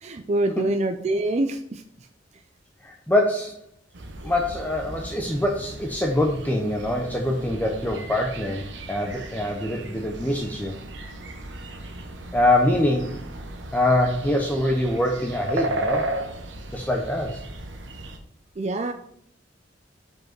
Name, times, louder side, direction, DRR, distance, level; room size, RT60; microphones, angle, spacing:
voice 1, 0.0-1.8 18.6-18.9, right 2 dB, 35° right, 6 dB, 0.4 m, -25 dB
voice 2, 2.8-3.6 4.2-10.7 12.3-13.2 13.7-16.1 16.7-17.4, left 1 dB, 10° left, 1 dB, 0.6 m, -24 dB
sound 1, 3.9-18.2, right 1 dB, 75° right, 0.9 m, -35 dB
5.3 x 4.7 x 6.0 m, 0.67 s
head